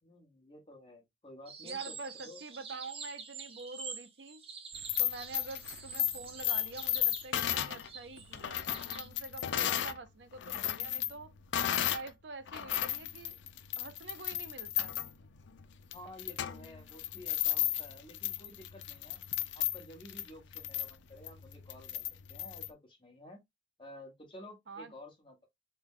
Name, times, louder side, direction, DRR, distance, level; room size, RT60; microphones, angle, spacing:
voice 1, 0.0-2.0 2.2-2.4 15.9-19.2 19.5-22.0 22.3-23.4 23.8-25.5, left 1 dB, 25° left, 1.1 m, -52 dB
sound 1, 1.5-9.1, right 5 dB, 30° right, 0.7 m, -47 dB
voice 2, 1.6-4.4 5.0-8.6 9.0-11.3 11.9-13.4 13.8-14.9 24.7-24.9, right 3 dB, 75° right, 0.6 m, -46 dB
sound 2, 4.7-10.0 10.3-12.1 12.5-22.7, left 12 dB, 85° left, 0.4 m, -35 dB
3.3 x 2.2 x 3.6 m
head